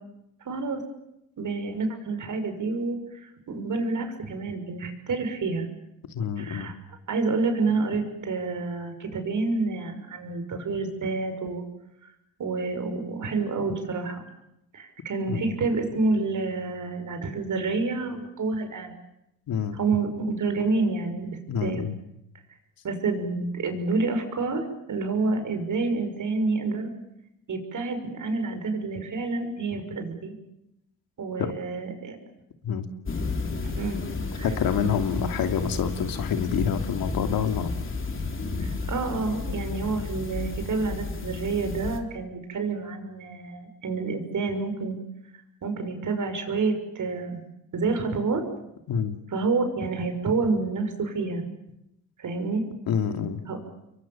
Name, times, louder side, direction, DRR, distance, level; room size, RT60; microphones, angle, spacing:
voice 1, 0.4-0.8 1.4-5.7 6.4-6.7 7.1-11.6 12.0-12.1 12.4-14.2 14.7-18.9 19.7-21.8 22.8-26.9 27.5-30.3 31.2-32.2 33.6-34.0 34.3-34.6 38.6-45.0 45.6-47.4 47.7-48.4 49.3-51.4 52.2-52.6 53.5-53.6, right 3 dB, 55° right, 6 dB, 6.3 m, -28 dB
voice 2, 6.1-6.7 15.3-15.5 19.5-19.8 21.5-21.9 31.4-31.5 32.6-32.9 34.4-37.7 48.9-49.2 52.9-53.4, left 7 dB, 70° left, 6 dB, 2.8 m, -27 dB
sound 1, 33.1-42.0, left 3 dB, 35° left, 3.5 m, -32 dB
28.5 x 23.0 x 7.4 m, 0.84 s
supercardioid pair, 75°, 36 cm